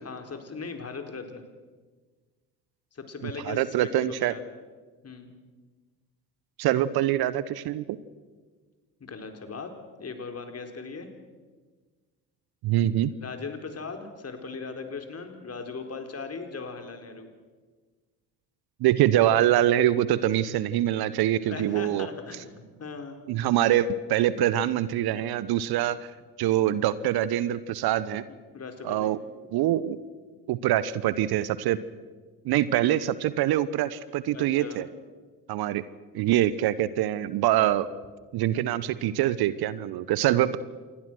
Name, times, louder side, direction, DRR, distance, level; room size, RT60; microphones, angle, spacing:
voice 1, 0.0-1.4 2.9-4.4 5.0-5.3 9.0-9.7 10.0-11.1 13.2-17.3 21.5-23.2 28.5-29.1 34.3-34.8, left 4 dB, 30° left, 6 dB, 4.2 m, -38 dB
voice 2, 3.5-4.3 6.6-8.0 12.6-13.1 18.8-22.1 23.3-26.1 26.4-28.2 28.8-29.2 29.5-30.0 30.5-31.8 32.4-34.9 35.5-35.8 36.1-37.9 38.3-40.6, right 12 dB, 55° right, 17 dB, 1.1 m, -24 dB
27.5 x 21.5 x 6.3 m, 1.4 s
figure-of-eight pair, 55°, 46 cm